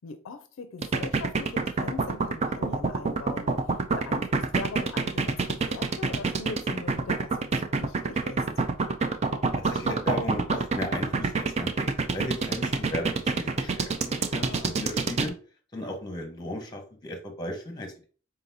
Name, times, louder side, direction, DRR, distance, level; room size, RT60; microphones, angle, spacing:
voice 1, 0.0-3.5 3.9-8.4 14.3-14.8, left 4 dB, 75° left, 0.4 m, -41 dB
sound 1, 0.8-15.3, right 4 dB, 35° right, 0.4 m, -26 dB
voice 2, 9.6-15.3 15.7-18.1, left 1 dB, 20° left, 1.0 m, -36 dB
4.0 x 3.8 x 2.7 m
head